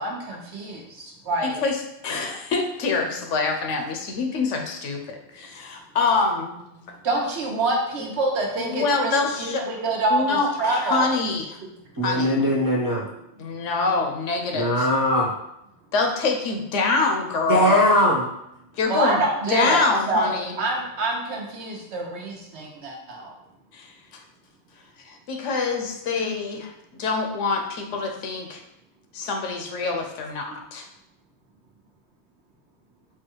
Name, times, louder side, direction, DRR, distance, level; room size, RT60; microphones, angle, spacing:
voice 1, 0.0-1.6 6.8-11.1 11.6-11.7 12.4-12.6 18.9-23.3 26.1-26.4 30.4-30.6, right 2 dB, 65° right, 0 dB, 1.1 m, -27 dB
voice 2, 1.4-1.8 2.0-6.6 8.6-9.7 10.1-11.5 12.0-12.4 13.4-14.9 15.9-17.8 18.8-19.2 19.5-20.6 23.7-24.2 25.0-28.6 29.1-30.9, left 4 dB, 75° left, 3 dB, 1.0 m, -25 dB
voice 3, 12.0-13.0 14.5-15.3 17.5-18.3, left 1 dB, 25° right, -4 dB, 0.5 m, -20 dB
4.7 x 2.2 x 4.5 m, 0.83 s
omnidirectional pair, 1.3 m